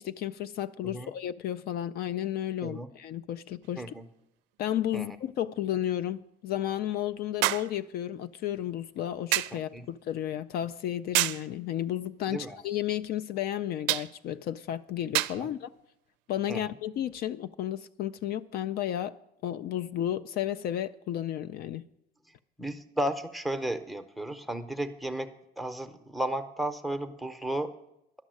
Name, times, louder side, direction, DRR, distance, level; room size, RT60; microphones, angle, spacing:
voice 1, 0.0-3.8 4.6-15.7 16.3-19.1 19.4-21.8, left 11 dB, 55° left, 0.4 m, -33 dB
sound 1, 3.6-3.7 7.4-7.8 9.3-9.6 11.1-11.5 13.9-14.1 15.1-15.4 16.5-16.6, right 18 dB, 80° right, 0.4 m, -27 dB
voice 2, 22.6-25.3 25.6-27.7, right 1 dB, ahead, 0.7 m, -33 dB
11.5 x 6.2 x 7.6 m
cardioid pair, 120°, 19 cm